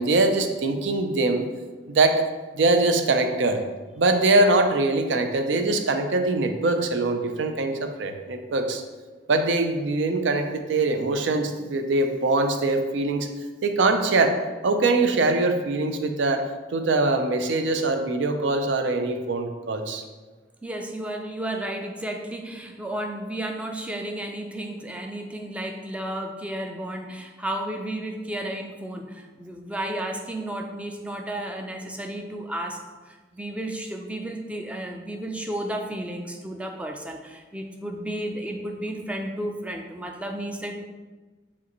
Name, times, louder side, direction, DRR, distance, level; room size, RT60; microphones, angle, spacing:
voice 1, 0.0-1.4 1.9-2.2 2.5-3.6 4.0-8.8 9.3-13.3 13.6-14.4 14.6-16.4 16.7-20.0, right 2 dB, 80° right, 6 dB, 0.4 m, -22 dB
voice 2, 20.6-40.7, right 1 dB, 5° right, 3 dB, 0.3 m, -33 dB
4.9 x 3.4 x 3.0 m, 1.3 s
head